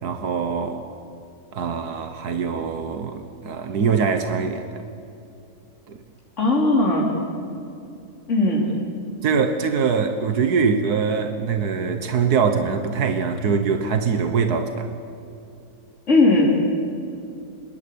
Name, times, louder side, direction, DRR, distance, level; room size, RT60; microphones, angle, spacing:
voice 1, 0.0-0.8 1.5-4.7 5.9-6.0 9.2-14.9, right 5 dB, 90° right, 7 dB, 1.8 m, -23 dB
voice 2, 6.4-7.1 8.3-8.7 16.1-16.6, left 2 dB, 50° left, -3 dB, 4.0 m, -18 dB
26.0 x 22.0 x 8.6 m, 2.7 s
omnidirectional pair, 1.6 m